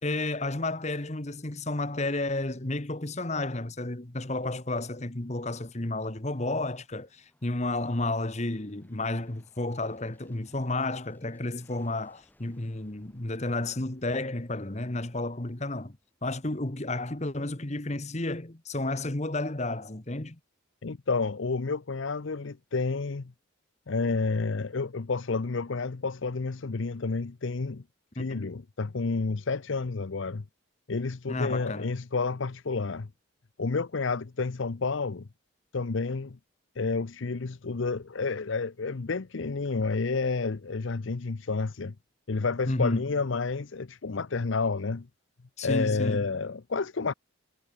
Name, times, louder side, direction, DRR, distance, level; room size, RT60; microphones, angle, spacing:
voice 1, 0.0-16.0 16.2-20.4 28.2-28.4 31.3-31.9 42.6-43.0 45.6-46.3, left 2 dB, 35° left, 1.3 m, -32 dB
Aircraft, 3.9-16.6, left 1 dB, 10° left, 7.8 m, -68 dB
voice 2, 20.8-23.3 23.9-27.8 28.1-30.4 30.9-33.1 33.6-35.3 35.7-36.4 36.8-41.9 42.3-45.1 45.6-47.1, left 4 dB, 65° left, 0.7 m, -30 dB
head